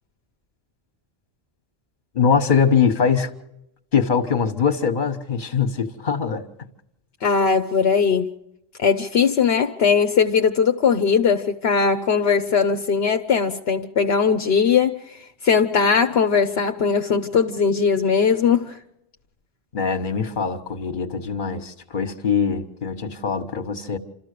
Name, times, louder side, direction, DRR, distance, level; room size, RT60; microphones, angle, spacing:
voice 1, 2.1-3.3 3.9-6.4 19.7-24.0, left 6 dB, 50° left, 1.6 m, -22 dB
voice 2, 7.2-8.3 8.8-18.8, left 6 dB, 75° left, 1.1 m, -19 dB
28.5 x 13.5 x 6.7 m
omnidirectional pair, 1.1 m